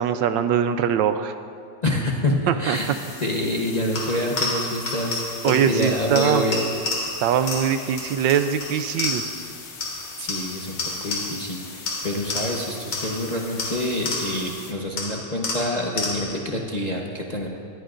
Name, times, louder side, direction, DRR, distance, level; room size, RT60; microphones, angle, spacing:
voice 1, 0.0-1.3 2.5-2.8 5.4-6.4 7.2-9.2, right 8 dB, 75° right, 10 dB, 1.2 m, -22 dB
voice 2, 1.8-2.9 3.2-6.6 10.2-17.5, left 1 dB, 30° left, -1 dB, 0.8 m, -27 dB
sound 1, 2.7-14.7, left 4 dB, 70° left, 2.1 m, -41 dB
sound 2, 3.9-9.5 9.8-11.5 11.9-14.5 15.0-16.5, left 3 dB, 90° left, 2.9 m, -31 dB
21.5 x 14.5 x 2.6 m, 2.3 s
omnidirectional pair, 2.1 m